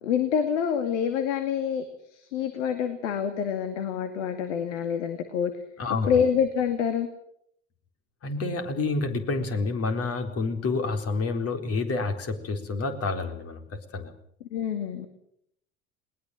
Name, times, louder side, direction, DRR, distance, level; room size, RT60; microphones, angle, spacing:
voice 1, 0.0-1.8 2.1-5.5 6.1-7.1 14.5-15.1, left 7 dB, 75° left, 9 dB, 2.4 m, -26 dB
voice 2, 5.8-6.2 8.2-14.1, left 3 dB, 40° left, 6 dB, 4.2 m, -29 dB
21.0 x 20.5 x 7.7 m, 0.71 s
hypercardioid pair, 75°, 36 cm